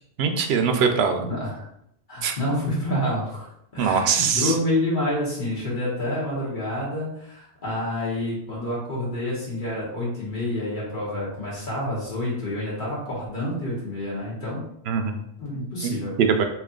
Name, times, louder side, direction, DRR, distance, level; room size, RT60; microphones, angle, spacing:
voice 1, 0.2-1.2 2.2-2.4 3.8-4.5 14.9-15.2 15.8-16.4, right 6 dB, 80° right, 6 dB, 0.8 m, -22 dB
voice 2, 1.2-1.7 2.1-14.6 15.4-16.1, left 1 dB, 50° left, -7 dB, 1.4 m, -28 dB
3.2 x 2.8 x 3.7 m, 0.74 s
omnidirectional pair, 1.1 m